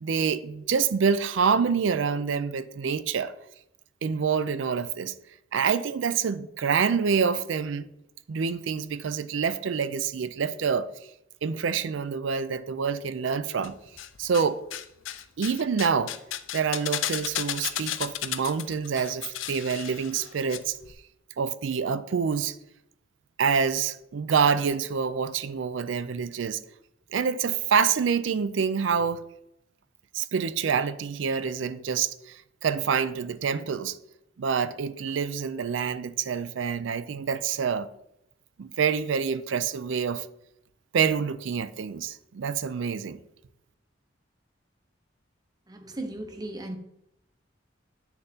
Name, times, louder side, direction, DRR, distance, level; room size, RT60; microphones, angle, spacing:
voice 1, 0.0-3.3 4.0-5.1 5.5-7.9 8.3-10.9 11.4-13.7 14.2-14.6 15.4-16.1 16.5-20.8 21.4-22.6 23.4-26.6 27.1-29.2 30.1-34.0 34.4-37.9 38.6-40.3 40.9-43.2, right 6 dB, 75° right, 0.4 m, -27 dB
sound 1, 13.6-14.5 14.7-20.6 20.8-20.9, left 12 dB, 90° left, 0.5 m, -34 dB
voice 2, 45.7-46.8, right 1 dB, 20° right, 0.8 m, -36 dB
9.1 x 6.6 x 2.8 m
head